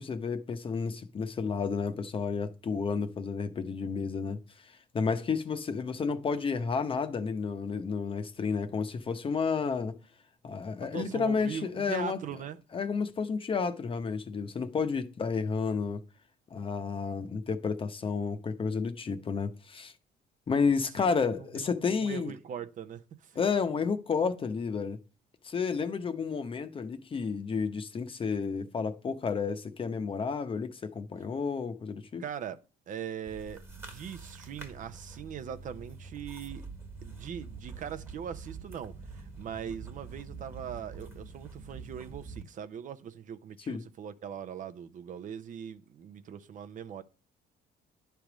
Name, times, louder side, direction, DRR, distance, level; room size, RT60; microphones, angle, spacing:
voice 1, 0.0-9.9 10.4-12.2 12.7-16.0 16.5-19.9 20.5-22.3 23.4-25.0 25.4-32.2 43.7-43.8, left 5 dB, 30° left, 0.8 m, -31 dB
voice 2, 10.9-12.6 21.0-23.4 32.2-32.6 32.9-36.6 37.0-47.0, right 8 dB, 50° right, 0.6 m, -41 dB
sound 1, 33.3-42.4, right 4 dB, 15° right, 1.3 m, -45 dB
10.0 x 3.4 x 6.0 m
cardioid pair, 110°, 17 cm